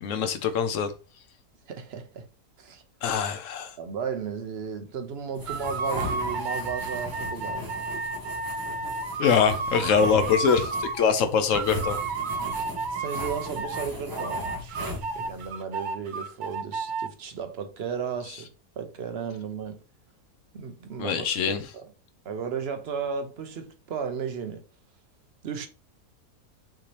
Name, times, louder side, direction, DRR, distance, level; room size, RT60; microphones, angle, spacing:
voice 1, 0.0-0.9 3.0-3.7 9.2-12.0 21.0-21.6, left 6 dB, 65° left, 0.9 m, -24 dB
voice 2, 1.7-2.3 2.6-2.8 3.8-7.6 12.9-18.5 18.8-19.8 20.5-21.9 22.2-24.6 25.4-25.7, right 6 dB, 55° right, 0.7 m, -34 dB
sound 1, 5.3-15.5, left 1 dB, 20° right, 0.6 m, -38 dB
sound 2, 5.5-11.1 11.5-13.9 14.2-17.1, right 4 dB, 90° right, 0.4 m, -32 dB
5.9 x 2.8 x 3.2 m
omnidirectional pair, 1.6 m